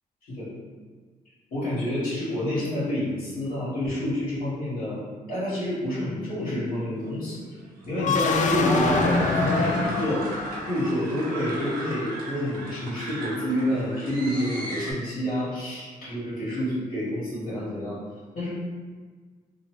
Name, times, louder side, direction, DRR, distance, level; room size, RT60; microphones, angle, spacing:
voice 1, 1.5-5.0 5.3-7.4 7.9-10.2 10.7-18.0 18.3-18.5, left 1 dB, 90° left, -14 dB, 1.5 m, -28 dB
sound 1, 6.9-14.9, right 1 dB, 85° right, 0.8 m, -35 dB
sound 2, 7.9-10.9, left 4 dB, 55° left, 0.4 m, -25 dB
3.2 x 2.6 x 3.0 m, 1.5 s
cardioid pair, 65°, 15 cm